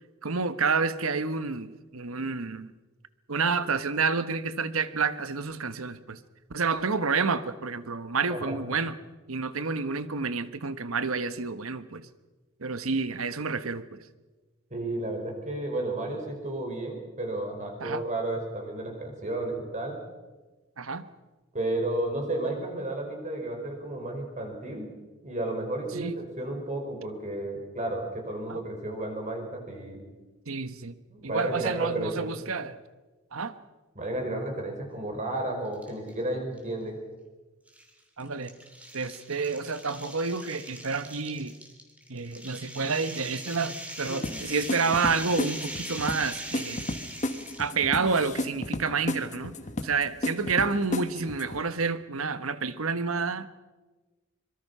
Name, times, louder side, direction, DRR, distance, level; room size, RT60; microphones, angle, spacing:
voice 1, 0.2-2.7 3.3-6.2 6.5-8.9 9.3-12.1 12.6-14.0 17.8-18.0 20.8-21.1 25.9-26.2 28.5-28.6 30.5-31.0 31.2-32.8 33.3-33.5 38.2-38.5 38.9-41.5 42.1-46.8 47.6-49.5 49.8-53.5, right 4 dB, 75° right, 12 dB, 1.2 m, -29 dB
voice 2, 14.7-20.0 21.5-24.9 25.2-30.0 31.1-32.3 34.0-37.0 44.1-44.2, right 1 dB, 35° right, 3 dB, 5.3 m, -32 dB
sound 1, 35.7-36.1 36.6-36.7 37.7-47.8, right 1 dB, 5° right, 3.0 m, -41 dB
sound 2, 44.2-51.6, left 1 dB, 35° left, 1.4 m, -33 dB
24.5 x 23.0 x 5.6 m, 1.2 s
head